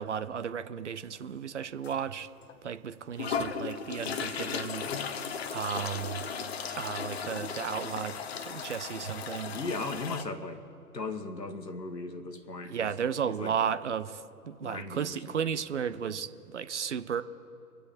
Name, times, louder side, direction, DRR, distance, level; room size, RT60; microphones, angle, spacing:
voice 1, 0.0-2.3 2.6-4.9 5.5-6.3 6.8-8.2 8.5-9.6 12.6-17.2, right 7 dB, 45° right, 14 dB, 0.6 m, -34 dB
sound 1, 1.8-2.0 2.5-2.6 3.2-10.2, left 6 dB, 40° left, 1.0 m, -36 dB
voice 2, 9.5-10.6 10.9-12.9 13.2-13.5 14.6-15.3, left 3 dB, 85° left, 8 dB, 1.7 m, -37 dB
25.5 x 9.2 x 4.2 m, 2.8 s
figure-of-eight pair, 135°, 48 cm